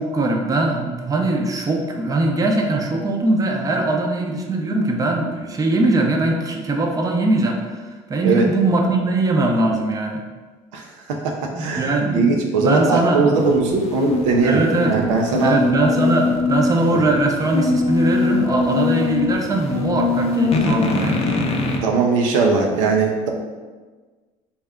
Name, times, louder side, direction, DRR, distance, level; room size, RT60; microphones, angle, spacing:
voice 1, 0.0-10.2 11.5-13.4 14.4-21.2, right 2 dB, 20° right, 1 dB, 0.6 m, -21 dB
voice 2, 10.7-14.6 14.9-15.6 21.8-23.3, right 4 dB, 85° right, 1 dB, 0.5 m, -19 dB
sound 1, 13.3-21.8, left 3 dB, 40° left, 0.6 m, -22 dB
3.4 x 2.2 x 3.5 m, 1.4 s
hypercardioid pair, 75°, 16 cm